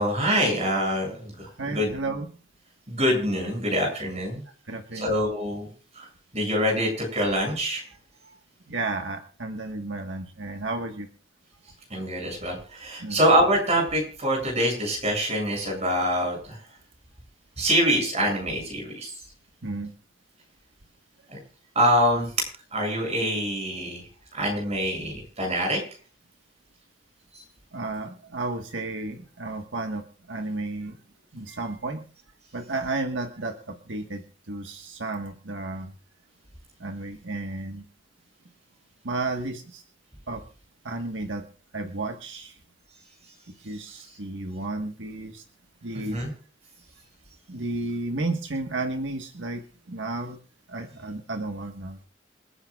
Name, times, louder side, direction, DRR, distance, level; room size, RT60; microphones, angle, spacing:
voice 1, 0.0-1.9 2.9-4.4 4.9-5.7 6.0-6.1 6.3-7.8 11.9-16.6 17.6-19.1 21.8-22.5 22.7-24.0 24.3-25.8 45.9-46.3, equal, 35° right, 1 dB, 7.5 m, -25 dB
voice 2, 1.6-2.3 4.5-5.1 8.7-11.1 13.0-13.2 19.6-19.9 27.7-30.0 30.3-31.0 31.3-32.0 32.5-35.9 36.8-37.8 39.0-39.8 40.3-40.4 40.8-41.4 41.7-42.5 43.6-45.4 45.8-46.2 47.5-50.4 50.7-52.0, right 2 dB, 85° right, 4 dB, 1.5 m, -32 dB
28.0 x 9.9 x 2.4 m, 0.40 s
head